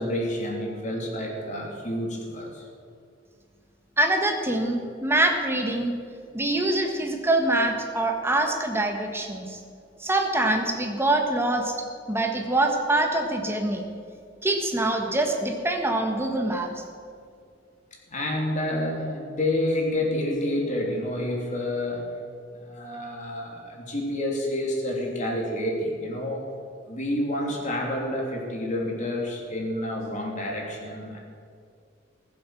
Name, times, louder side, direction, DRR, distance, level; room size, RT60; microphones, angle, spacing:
voice 1, 0.0-2.7 18.1-22.1 22.6-26.5 26.9-31.2, left 1 dB, 40° left, 0 dB, 3.0 m, -29 dB
voice 2, 4.0-6.0 6.3-9.6 10.0-11.8 12.1-13.8 14.4-16.7, right 1 dB, 15° right, 3 dB, 1.5 m, -24 dB
20.0 x 7.8 x 6.4 m, 2.3 s
head